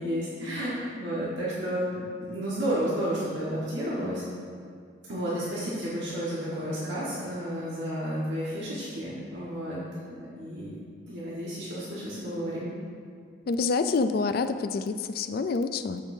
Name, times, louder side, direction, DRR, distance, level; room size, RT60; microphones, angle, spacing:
voice 1, 0.0-4.2 5.1-9.8 10.4-10.8 11.1-12.7, equal, 65° right, -8 dB, 1.5 m, -31 dB
voice 2, 13.5-16.0, left 4 dB, 50° left, 10 dB, 0.3 m, -27 dB
13.5 x 5.4 x 2.7 m, 2.2 s
head